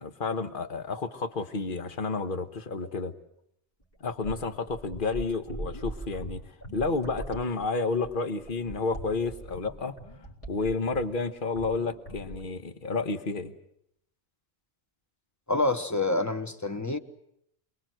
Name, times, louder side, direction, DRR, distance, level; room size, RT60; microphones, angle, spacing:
voice 1, 0.0-3.1 4.0-6.4 6.7-9.9 10.5-13.5, left 3 dB, 55° left, 9 dB, 1.5 m, -31 dB
sound 1, 3.8-11.3 11.5-11.8 12.1-12.5, right 1 dB, 35° left, 4.2 m, -41 dB
voice 2, 15.5-17.0, left 2 dB, 15° left, 9 dB, 1.2 m, -27 dB
28.0 x 21.5 x 7.8 m, 0.77 s
omnidirectional pair, 1.1 m